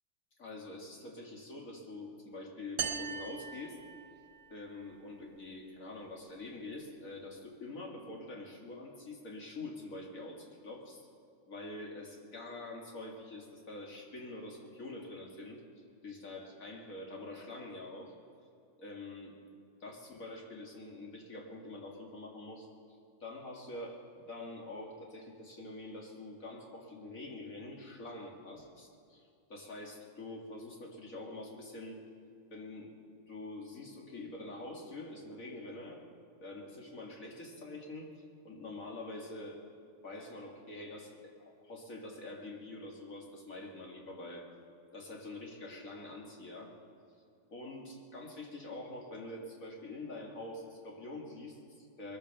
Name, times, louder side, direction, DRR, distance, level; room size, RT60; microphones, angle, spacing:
voice 1, 0.4-3.8 4.5-11.0 11.5-15.6 16.0-18.1 18.8-19.3 19.8-22.7 23.2-29.2 29.5-32.0 32.5-32.9 33.3-36.0 36.4-38.1 38.4-39.6 40.0-44.5 44.9-46.7 47.5-52.2, left 2 dB, 80° left, -1 dB, 2.8 m, -45 dB
sound 1, 2.8-4.5, right 7 dB, 75° right, 1.1 m, -39 dB
22.0 x 9.0 x 6.9 m, 2.6 s
omnidirectional pair, 1.4 m